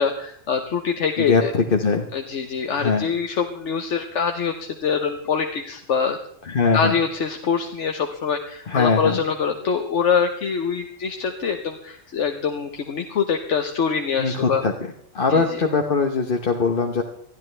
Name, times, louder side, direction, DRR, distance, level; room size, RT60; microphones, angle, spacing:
voice 1, 0.0-1.5 2.1-6.2 6.7-14.6 15.3-15.6, left 6 dB, 70° left, 4 dB, 1.3 m, -24 dB
voice 2, 1.2-2.1 2.8-3.1 6.4-7.0 8.7-9.2 14.2-14.7 15.1-17.0, left 4 dB, 45° left, 2 dB, 1.2 m, -21 dB
20.5 x 13.5 x 3.3 m, 0.66 s
omnidirectional pair, 1.3 m